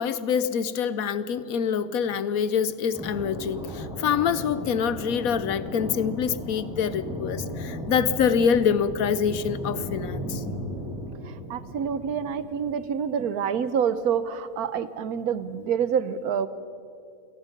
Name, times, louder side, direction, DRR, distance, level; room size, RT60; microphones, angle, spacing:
voice 1, 0.0-10.4, left 7 dB, 70° left, 15 dB, 1.2 m, -25 dB
sound 1, 2.9-12.8, equal, 5° right, 7.0 m, -35 dB
voice 2, 11.2-16.5, right 7 dB, 80° right, 14 dB, 1.3 m, -27 dB
28.5 x 18.0 x 5.2 m, 2.5 s
omnidirectional pair, 1.6 m